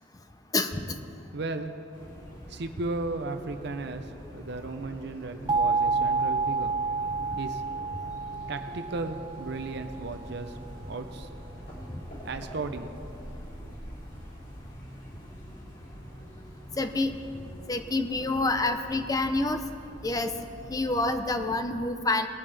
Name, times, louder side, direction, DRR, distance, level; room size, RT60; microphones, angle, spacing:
voice 1, 0.5-1.0 16.8-17.1 17.7-19.6 20.0-20.3 20.7-22.3, left 2 dB, 20° left, 8 dB, 0.6 m, -27 dB
voice 2, 1.3-1.8 2.5-6.8 7.4-7.6 8.5-10.6 10.9-11.3 12.2-12.9, right 3 dB, 65° right, 8 dB, 0.6 m, -35 dB
sound 1, 1.9-21.5, equal, 50° left, 3.3 m, -44 dB
sound 2, 5.5-10.2, right 4 dB, 25° right, 0.3 m, -29 dB
20.0 x 8.8 x 3.4 m, 2.8 s
head